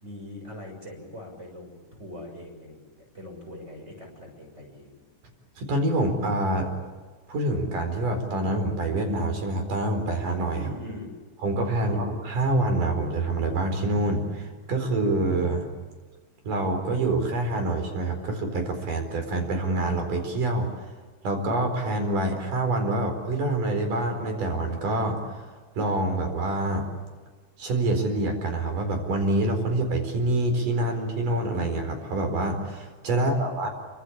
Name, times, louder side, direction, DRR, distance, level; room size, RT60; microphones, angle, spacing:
voice 1, 0.0-5.0 10.5-11.1 11.8-12.1 33.1-33.5, left 1 dB, 20° right, 2 dB, 6.9 m, -42 dB
voice 2, 5.6-6.7 7.3-10.6 11.4-15.7 16.4-20.7 21.2-25.4 25.8-26.8 27.6-33.7, right 2 dB, 90° right, 5 dB, 6.0 m, -26 dB
27.5 x 25.0 x 8.7 m, 1.4 s
omnidirectional pair, 3.6 m